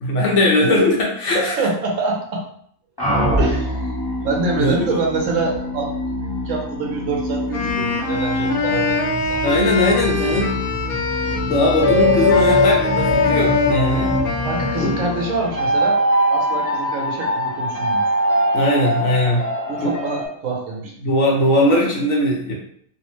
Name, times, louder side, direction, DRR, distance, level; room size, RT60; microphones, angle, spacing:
voice 1, 0.0-1.6 4.6-5.0 9.4-10.6 11.2-14.1 14.8-14.9 18.5-19.4 19.8-20.0 21.0-22.5, left 1 dB, 65° left, -2 dB, 0.9 m, -19 dB
voice 2, 1.3-2.4 3.4-3.7 4.2-5.9 6.5-9.5 14.4-16.0 16.3-18.0 19.7-20.9, right 3 dB, 70° right, 0 dB, 0.9 m, -25 dB
sound 1, 3.0-15.8, equal, 20° left, 0.8 m, -26 dB
Wind instrument woodwind instrument, 7.5-15.6, left 3 dB, 85° left, 1.1 m, -24 dB
sound 2, 11.8-20.3, left 1 dB, 40° right, 1.1 m, -21 dB
2.7 x 2.0 x 3.0 m, 0.64 s
omnidirectional pair, 1.5 m